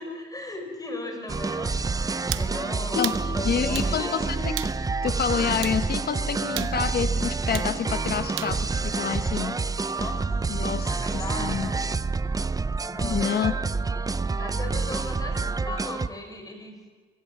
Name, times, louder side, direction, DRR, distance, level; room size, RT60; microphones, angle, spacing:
voice 1, 0.0-1.7 2.0-4.4 9.9-10.2 10.8-11.8 12.8-13.7 14.4-16.8, left 2 dB, 20° left, 4 dB, 6.0 m, -37 dB
sound 1, 1.3-16.1, right 4 dB, 20° right, 0.5 m, -28 dB
sound 2, 2.3-2.5 3.0-3.2 3.8-3.9 4.6-4.8 5.6-5.8 6.6-6.8 7.5-7.7 8.4-8.6, right 14 dB, 90° right, 0.7 m, -33 dB
sound 3, 2.9-6.3, left 10 dB, 90° left, 1.9 m, -39 dB
voice 2, 2.9-4.5 5.0-9.6 10.5-11.7 13.0-13.5, left 7 dB, 50° left, 10 dB, 1.0 m, -28 dB
23.0 x 17.5 x 7.5 m, 1.4 s
cardioid pair, 90°, 20 cm